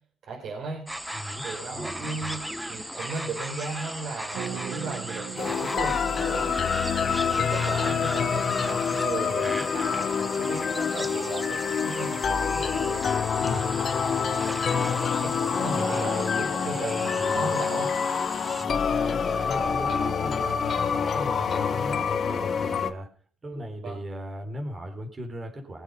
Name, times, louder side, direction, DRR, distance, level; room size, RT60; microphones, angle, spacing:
voice 1, 0.3-0.9 1.4-6.5 7.3-13.0 13.3-13.5 14.0-14.2 14.6-17.9 18.3-18.4 23.8-24.0, right 4 dB, 65° right, -2 dB, 4.8 m, -36 dB
sound 1, 0.9-18.7, right 1 dB, 5° right, 1.0 m, -37 dB
voice 2, 1.1-1.4 1.7-2.1 9.4-9.7 13.4-13.8 15.6-16.4 17.2-17.5 18.6-23.1 23.4-25.8, equal, 30° right, 4 dB, 4.0 m, -37 dB
sound 2, 4.3-8.5, right 7 dB, 85° right, 1.8 m, -40 dB
sound 3, 5.4-22.9, left 6 dB, 50° left, 1.2 m, -27 dB
20.5 x 8.1 x 5.4 m, 0.41 s
cardioid pair, 90°, 0 cm